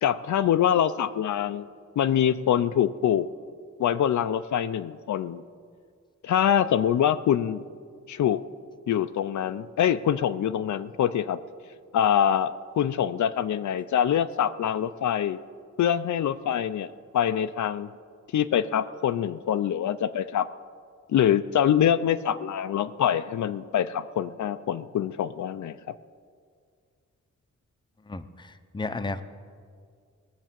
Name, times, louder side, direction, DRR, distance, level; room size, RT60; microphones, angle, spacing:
voice 1, 0.0-1.7 2.0-3.3 3.8-5.4 6.2-7.6 8.1-8.4 8.9-11.4 11.9-15.4 15.8-17.9 18.3-20.5 21.1-25.9, left 9 dB, 75° left, 12 dB, 0.5 m, -25 dB
voice 2, 28.1-29.2, left 3 dB, 15° left, 9 dB, 0.6 m, -33 dB
19.5 x 6.7 x 7.5 m, 2.1 s
wide cardioid pair, 115°, 29 cm